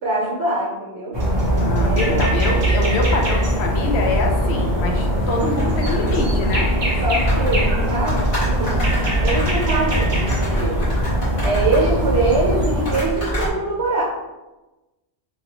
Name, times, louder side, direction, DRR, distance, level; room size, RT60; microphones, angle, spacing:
voice 1, 0.0-1.2 1.8-2.3 7.0-8.7 9.2-10.9 11.4-14.0, right 2 dB, 75° right, -5 dB, 0.9 m, -23 dB
sound 1, 1.1-13.0, equal, 30° right, 0.5 m, -21 dB
sound 2, 1.4-13.5, right 1 dB, 30° left, 1.2 m, -27 dB
voice 2, 1.6-6.7, left 3 dB, 75° left, 1 dB, 0.8 m, -25 dB
2.7 x 2.4 x 2.8 m, 1.1 s
omnidirectional pair, 1.1 m